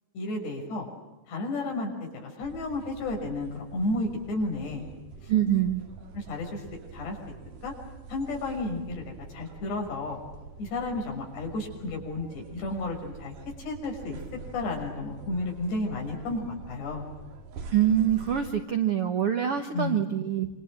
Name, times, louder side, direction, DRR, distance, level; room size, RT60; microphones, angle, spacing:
voice 1, 0.1-0.9 1.3-4.9 5.2-5.3 6.1-6.6 6.9-7.3 7.6-7.7 8.1-10.2 10.6-13.3 13.6-14.2 14.5-17.1 19.7-20.0, left 2 dB, 75° left, 1 dB, 8.2 m, -32 dB
sound 1, 2.4-18.6, right 5 dB, 50° right, 3.8 m, -45 dB
voice 2, 5.3-5.8 17.7-20.5, right 10 dB, 80° right, 7 dB, 1.2 m, -25 dB
27.5 x 26.5 x 7.7 m, 1.0 s
omnidirectional pair, 4.9 m